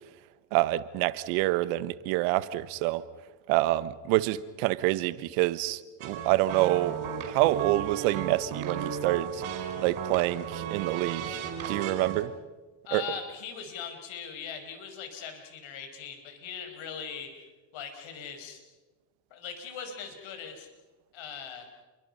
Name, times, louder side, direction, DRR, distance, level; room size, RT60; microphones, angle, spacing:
voice 1, 0.5-3.0 3.5-7.0 7.2-9.4 9.8-11.4 11.7-12.3 12.9-13.0, right 17 dB, 90° right, 15 dB, 1.2 m, -27 dB
sound 1, 6.0-12.2, right 7 dB, 70° right, 5.2 m, -35 dB
voice 2, 12.9-17.3 17.7-18.6 19.3-20.7 21.1-21.7, left 7 dB, 70° left, 6 dB, 5.3 m, -40 dB
29.5 x 23.5 x 5.6 m, 1.2 s
supercardioid pair, 90°, 48 cm